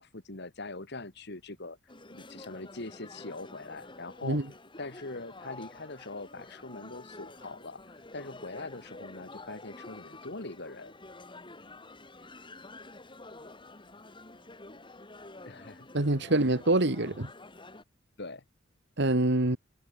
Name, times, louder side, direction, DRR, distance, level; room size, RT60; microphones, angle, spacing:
voice 1, 0.0-1.8 2.1-4.4 4.8-10.9 15.4-16.3 18.2-18.4, left 2 dB, 60° left, 2.7 m, -42 dB
sound 1, 1.9-17.8, left 2 dB, 25° left, 3.2 m, -49 dB
voice 2, 15.9-17.3 19.0-19.6, right 2 dB, 60° right, 1.9 m, -25 dB
head